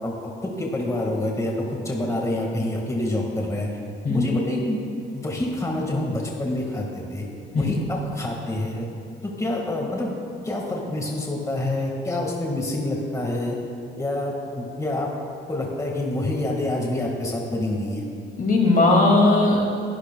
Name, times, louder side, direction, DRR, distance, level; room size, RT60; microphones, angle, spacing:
voice 1, 0.0-3.7 4.1-4.8 5.1-7.2 7.5-8.9 9.2-10.1 10.4-13.5 14.0-15.1 15.5-18.0, left 1 dB, 15° left, -1 dB, 1.7 m, -27 dB
voice 2, 18.4-19.6, left 2 dB, 45° left, 0 dB, 2.2 m, -18 dB
21.5 x 12.0 x 2.3 m, 2.5 s
cardioid pair, 90°, 20 cm